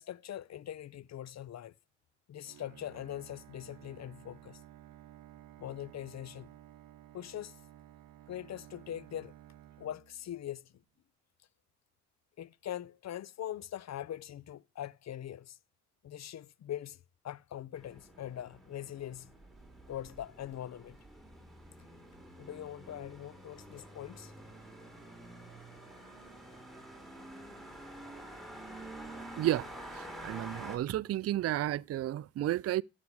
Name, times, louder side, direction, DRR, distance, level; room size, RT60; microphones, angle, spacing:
voice 1, 0.0-1.7 2.3-4.6 5.6-6.5 7.1-7.6 8.3-9.3 9.8-10.8 12.4-15.6 16.0-19.3 19.9-21.0 22.4-24.3, left 11 dB, 45° left, 0.5 m, -42 dB
Bowed string instrument, 2.4-10.7, right 12 dB, 60° right, 0.9 m, -55 dB
sound 1, 17.7-30.8, right 1 dB, ahead, 3.7 m, -49 dB
sound 2, 24.5-27.2 27.8-30.3, left 1 dB, 25° left, 3.9 m, -67 dB
voice 2, 29.9-32.8, right 13 dB, 40° right, 0.4 m, -32 dB
13.5 x 8.4 x 3.1 m
supercardioid pair, 55°, 37 cm